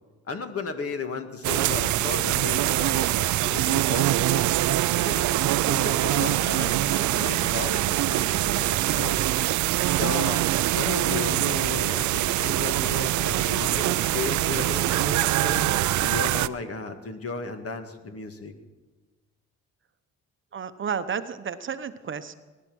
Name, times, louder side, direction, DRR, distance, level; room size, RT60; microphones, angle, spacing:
voice 1, 0.3-4.5 5.0-9.2 9.9-10.4 10.7-15.7 16.0-18.5, left 4 dB, 50° left, 7 dB, 1.9 m, -35 dB
sound 1, 1.4-16.5, right 15 dB, 75° right, 0.5 m, -24 dB
voice 2, 20.5-22.3, right 7 dB, 40° right, 11 dB, 0.9 m, -32 dB
20.0 x 11.0 x 6.3 m, 1.3 s
cardioid pair, 90°, 30 cm